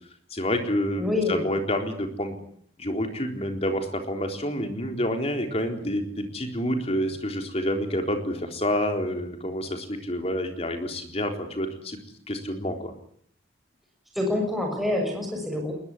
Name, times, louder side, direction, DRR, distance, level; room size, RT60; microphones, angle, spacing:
voice 1, 0.3-1.0 1.3-2.4 2.8-12.0 12.3-12.9, equal, 30° left, 5 dB, 3.9 m, -28 dB
voice 2, 1.0-1.4 14.1-15.7, left 2 dB, ahead, 0 dB, 6.7 m, -26 dB
21.0 x 21.0 x 9.8 m, 0.65 s
head